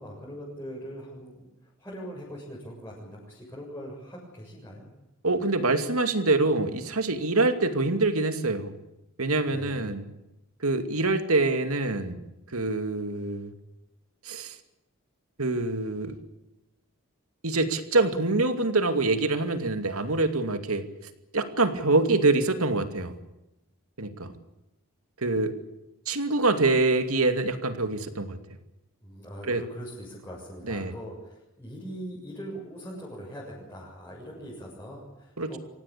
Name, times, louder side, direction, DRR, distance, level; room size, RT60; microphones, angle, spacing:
voice 1, 0.0-4.9 9.4-10.0 29.0-35.6, equal, 10° left, -6 dB, 7.3 m, -41 dB
voice 2, 5.2-8.7 9.2-10.0 10.6-12.2 12.5-13.5 14.3-14.6 15.4-16.2 17.4-20.8 21.3-23.1 24.0-24.3 25.2-25.6 26.1-28.4 29.5-29.6 30.7-30.9 35.4-35.6, right 3 dB, 80° right, 8 dB, 2.6 m, -25 dB
25.5 x 18.0 x 8.5 m, 0.95 s
head